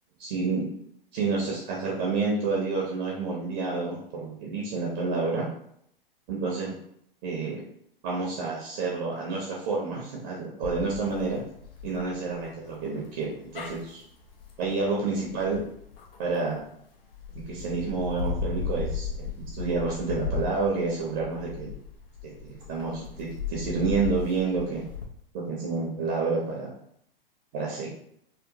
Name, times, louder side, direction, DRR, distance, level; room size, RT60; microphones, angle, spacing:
voice 1, 0.2-0.6 1.1-5.4 6.3-6.7 7.2-7.6 8.0-11.4 11.8-14.0 14.6-15.6 16.2-16.6 17.5-19.3 19.6-21.7 22.4-24.8 25.3-26.7 27.5-27.9, right 4 dB, 35° right, -3 dB, 0.6 m, -29 dB
sound 1, 10.6-16.6 17.1-25.1, left 6 dB, 70° left, 0.7 m, -36 dB
2.9 x 2.0 x 2.6 m, 0.70 s
figure-of-eight pair, 110°, 29 cm